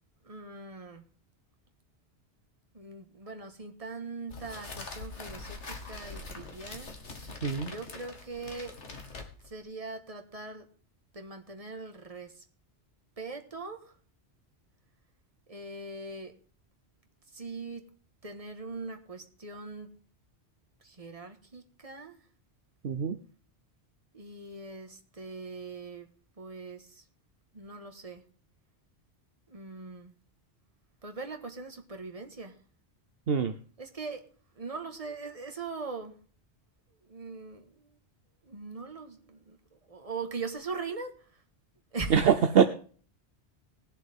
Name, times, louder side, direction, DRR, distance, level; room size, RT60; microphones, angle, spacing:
voice 1, 0.2-1.0 2.7-6.9 7.6-8.7 9.4-10.7 11.1-12.4 13.2-13.9 15.5-16.3 17.3-17.9 18.2-19.9 20.8-22.2 24.1-26.1 26.4-27.0 27.5-28.2 29.5-30.1 31.0-32.5 33.8-34.3 34.6-36.1 37.1-37.6 38.4-41.2 41.9-42.3, right 3 dB, 30° right, 5 dB, 1.6 m, -41 dB
sound 1, 4.3-9.6, left 3 dB, 85° left, 2.2 m, -43 dB
voice 2, 22.8-23.1 33.3-33.5 42.1-42.6, right 7 dB, 60° right, 9 dB, 1.0 m, -23 dB
20.0 x 7.4 x 3.6 m, 0.42 s
omnidirectional pair, 1.1 m